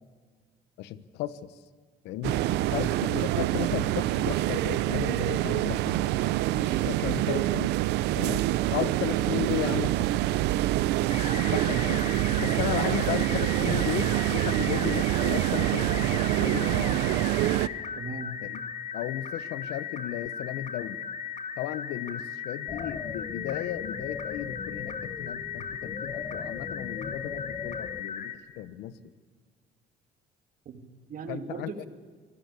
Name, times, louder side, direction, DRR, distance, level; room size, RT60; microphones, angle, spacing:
voice 1, 0.8-1.6 2.0-2.4 2.7-6.1 6.6-7.7 8.1-10.2 11.4-12.0 12.4-17.0 18.4-18.6 18.9-21.0 21.6-29.1 31.3-31.8, left 12 dB, 85° left, 16 dB, 1.1 m, -35 dB
sound 1, 2.2-17.7, right 16 dB, 85° right, 0.8 m, -26 dB
voice 2, 2.3-3.2 18.0-18.4 30.7-31.9, right 5 dB, 55° right, 8 dB, 2.5 m, -39 dB
sound 2, 11.1-28.4, left 7 dB, 45° left, 2.0 m, -37 dB
sound 3, 22.7-28.0, left 5 dB, 25° left, 0.6 m, -40 dB
25.0 x 18.5 x 8.5 m, 1.5 s
cardioid pair, 110°, 17 cm